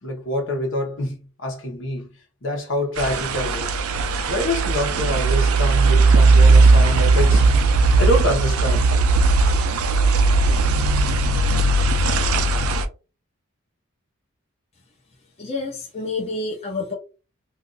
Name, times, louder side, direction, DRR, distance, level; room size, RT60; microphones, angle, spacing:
voice 1, 0.0-2.1 2.4-3.7 4.3-7.5 8.0-8.9, left 1 dB, 60° left, 1.0 m, -25 dB
sound 1, 3.0-12.9, right 3 dB, 90° right, 0.5 m, -17 dB
voice 2, 15.4-16.9, left 3 dB, 30° left, 0.7 m, -28 dB
2.6 x 2.5 x 3.8 m
head